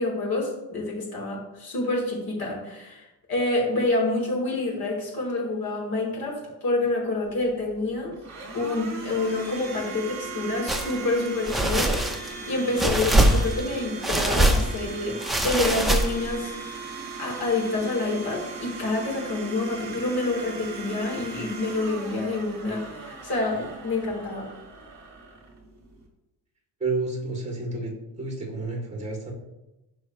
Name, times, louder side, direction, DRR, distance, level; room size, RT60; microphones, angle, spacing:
voice 1, 0.0-8.1 8.5-12.0 12.5-15.2 15.4-16.5 17.2-24.5, left 2 dB, 60° left, -2 dB, 3.9 m, -27 dB
Domestic sounds home sounds, 7.2-26.1, right 4 dB, 40° right, 2.7 m, -39 dB
sound 1, 10.7-10.9 11.4-12.3 12.8-13.7 14.0-14.8 15.2-16.3, right 1 dB, ahead, 0.9 m, -22 dB
voice 2, 26.8-29.3, right 3 dB, 15° right, -1 dB, 3.0 m, -30 dB
16.0 x 5.5 x 3.3 m, 0.96 s
cardioid pair, 130°, 41 cm